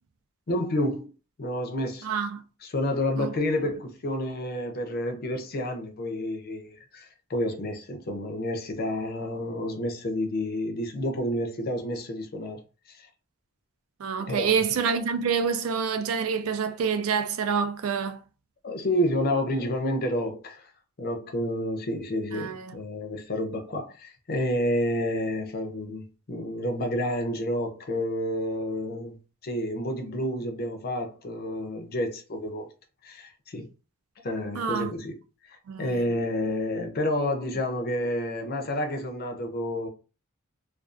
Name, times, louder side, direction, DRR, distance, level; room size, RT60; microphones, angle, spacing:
voice 1, 0.5-1.1 1.4-2.1 2.6-12.6 12.9-13.1 14.3-14.6 18.6-20.7 21.0-32.7 33.0-33.7 34.2-35.2 35.5-39.9, left 1 dB, 45° left, 0.5 m, -29 dB
voice 2, 2.0-2.4 3.2-3.3 14.0-18.2 22.3-22.8 34.5-34.9 35.7-36.0, right 6 dB, 70° right, 0.4 m, -27 dB
2.4 x 2.3 x 2.4 m
head